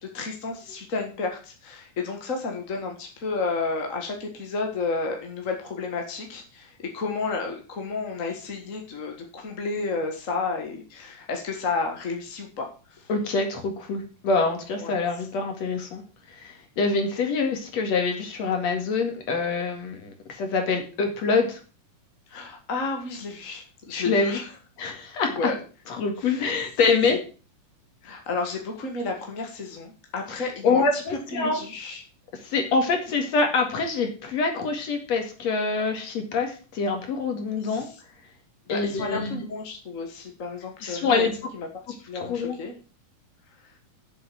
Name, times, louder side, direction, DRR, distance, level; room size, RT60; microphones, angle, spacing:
voice 1, 0.0-13.1 14.8-14.9 22.3-24.5 25.3-25.6 26.2-26.5 27.1-27.2 28.0-31.0 31.3-32.0 37.7-37.9 38.7-41.7 42.1-42.7, left 4 dB, 35° left, 2 dB, 1.3 m, -31 dB
voice 2, 13.1-16.0 16.3-21.6 23.9-24.4 24.8-25.5 25.9-27.2 30.6-31.6 32.4-37.9 38.7-39.4 40.8-41.3 42.1-42.6, left 4 dB, 55° left, 4 dB, 3.2 m, -25 dB
7.8 x 7.4 x 7.7 m, 0.36 s
omnidirectional pair, 3.7 m